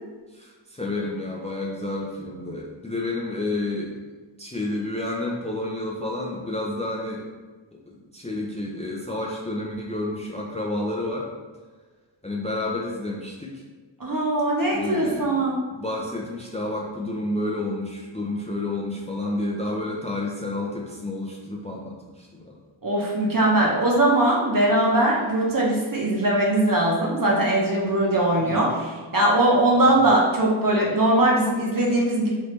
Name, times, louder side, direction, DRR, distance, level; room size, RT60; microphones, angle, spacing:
voice 1, 0.3-3.9 4.4-7.2 7.7-7.8 8.1-11.3 12.2-13.6 14.7-15.4 15.7-22.6 28.4-28.7 29.9-30.1, left 2 dB, 15° left, -3 dB, 0.4 m, -30 dB
voice 2, 14.0-15.6 22.8-32.3, right 1 dB, 45° right, -3 dB, 0.9 m, -21 dB
3.2 x 2.7 x 3.1 m, 1.4 s
wide cardioid pair, 45°, 47 cm